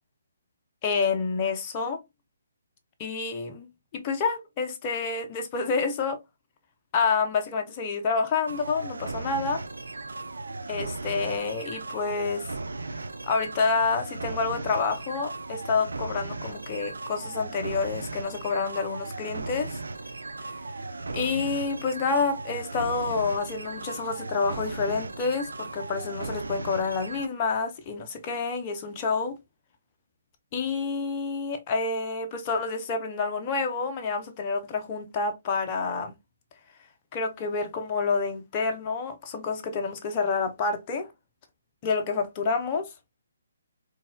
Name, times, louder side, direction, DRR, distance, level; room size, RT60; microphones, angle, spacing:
voice 1, 0.8-2.0 3.0-3.7 3.9-6.2 6.9-9.6 10.7-12.5 13.3-19.8 21.1-29.4 30.5-36.1 37.1-41.1 41.8-42.9, left 4 dB, 30° left, 0.6 m, -28 dB
sound 1, 8.5-27.3, right 3 dB, 75° right, 0.4 m, -37 dB
3.9 x 2.3 x 2.2 m
figure-of-eight pair, 135°, 0 cm